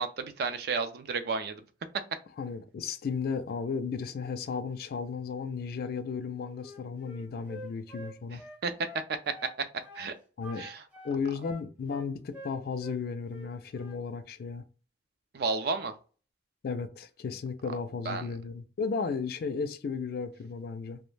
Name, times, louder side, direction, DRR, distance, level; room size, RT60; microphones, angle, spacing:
voice 1, 0.0-1.6 8.6-8.7 9.1-9.3 9.9-10.1 10.6-10.8 15.3-15.9 18.1-18.3, right 4 dB, 60° right, 0.4 m, -32 dB
voice 2, 2.4-8.4 10.4-10.7 11.0-14.6 16.6-21.0, left 5 dB, 55° left, 0.3 m, -34 dB
Wind instrument woodwind instrument, 6.6-9.6 9.8-10.1 10.4-13.0 13.3-14.0, left 1 dB, 10° right, 0.6 m, -46 dB
2.3 x 2.1 x 3.1 m
head